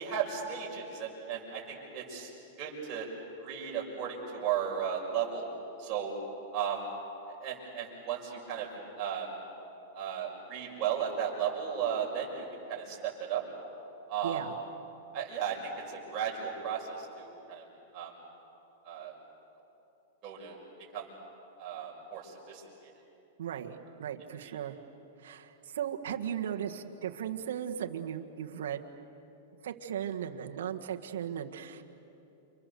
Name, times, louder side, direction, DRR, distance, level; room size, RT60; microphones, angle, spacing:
voice 1, 0.0-2.3 2.6-3.1 3.4-5.5 5.8-6.1 6.5-6.8 7.4-8.7 9.0-9.3 9.9-13.4 14.1-14.4 15.1-17.6 17.9-18.1 18.8-19.1 20.2-20.6 20.9-21.0 21.6-22.9 24.4-24.5, right 8 dB, 30° right, -3 dB, 6.7 m, -35 dB
voice 2, 14.2-14.5 23.4-24.8 25.2-28.8 29.6-31.8, right 9 dB, 80° right, 4 dB, 1.6 m, -37 dB
29.5 x 26.5 x 7.0 m, 2.9 s
supercardioid pair, 145°, 0 cm